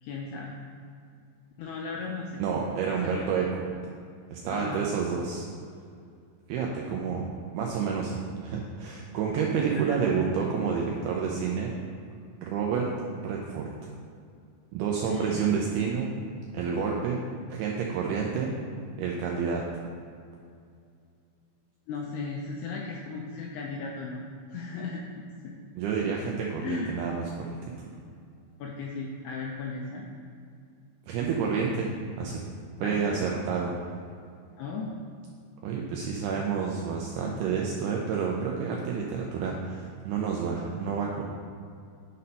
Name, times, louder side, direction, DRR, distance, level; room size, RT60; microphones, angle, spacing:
voice 1, 0.0-0.5 1.6-2.4 2.9-3.3 4.5-4.8 9.9-10.0 15.0-15.5 21.9-25.2 26.6-26.9 28.6-30.1 32.8-33.2 34.6-35.0, left 4 dB, 80° left, -1 dB, 2.3 m, -36 dB
voice 2, 2.4-3.6 4.3-5.5 6.5-11.7 12.4-12.9 13.2-13.7 14.7-16.1 16.5-17.2 17.5-18.5 19.0-19.6 25.8-27.5 31.1-32.4 32.8-33.7 35.6-41.2, right 6 dB, 85° right, -2 dB, 2.2 m, -29 dB
9.5 x 4.3 x 5.3 m, 2.3 s
omnidirectional pair, 5.3 m